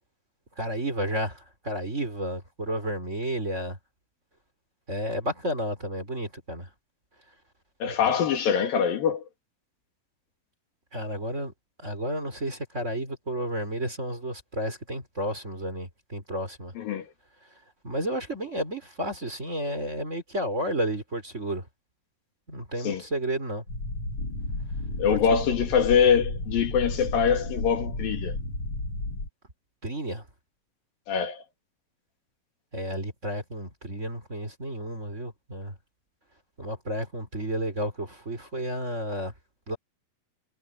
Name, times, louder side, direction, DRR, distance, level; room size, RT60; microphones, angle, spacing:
voice 1, 0.6-3.8 4.9-6.7 8.0-8.2 10.9-11.5 11.8-16.7 17.5-21.7 22.5-23.6 25.1-25.2 29.8-30.3 32.7-35.7 36.6-39.3 39.7-39.8, right 1 dB, 20° right, 4.2 m, -32 dB
voice 2, 7.8-9.2 16.8-17.1 22.8-23.0 25.0-28.3 31.1-31.4, left 7 dB, 80° left, 4.0 m, -24 dB
sound 1, 23.7-29.3, left 2 dB, 40° left, 4.4 m, -32 dB
omnidirectional pair, 4.0 m